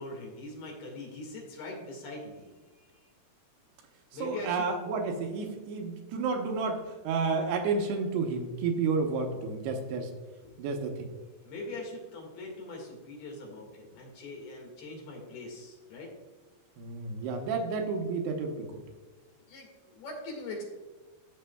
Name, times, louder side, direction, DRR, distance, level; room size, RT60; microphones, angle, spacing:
voice 1, 0.0-3.0 4.1-4.7 10.4-10.6 11.4-16.1 19.4-20.6, left 2 dB, 70° left, 0 dB, 3.6 m, -42 dB
voice 2, 4.2-10.1 10.6-11.1 16.8-18.8, right 4 dB, 80° right, 3 dB, 2.8 m, -31 dB
13.5 x 6.7 x 2.2 m, 1.3 s
omnidirectional pair, 4.8 m